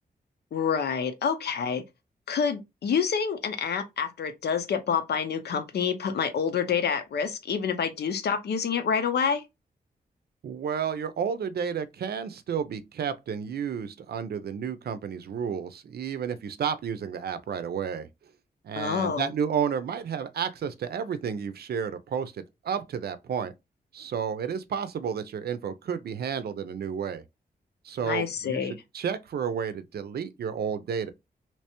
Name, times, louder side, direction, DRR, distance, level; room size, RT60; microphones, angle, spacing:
voice 1, 0.5-1.8 2.3-9.4 18.8-19.3 28.0-28.7, left 6 dB, 85° left, 0.7 m, -27 dB
voice 2, 10.4-18.1 18.6-23.5 23.9-27.2 27.8-31.1, right 7 dB, 75° right, 0.5 m, -31 dB
3.3 x 3.0 x 2.9 m
wide cardioid pair, 155°, 17 cm